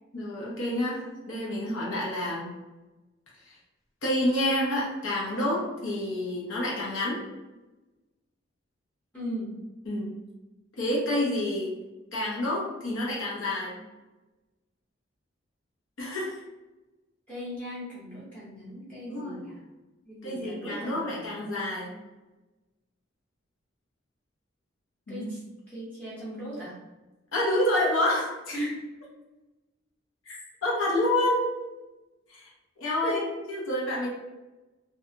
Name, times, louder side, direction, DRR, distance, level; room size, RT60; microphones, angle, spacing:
voice 1, 0.1-2.5 3.5-3.6 4.0-7.2 9.9-10.1 10.8-11.7 12.1-13.8 16.0-16.3 19.0-19.5 20.2-21.9 25.1-25.3 27.3-28.5 30.3-31.5 32.3-32.5 32.8-33.2 33.5-34.1, left 1 dB, 85° left, -4 dB, 0.8 m, -28 dB
voice 2, 9.1-9.6 17.3-19.6 20.0-21.4 25.1-25.4 25.7-26.8 28.5-28.8 33.0-33.4, equal, 5° left, -8 dB, 0.7 m, -37 dB
2.8 x 2.4 x 2.5 m, 1.1 s
head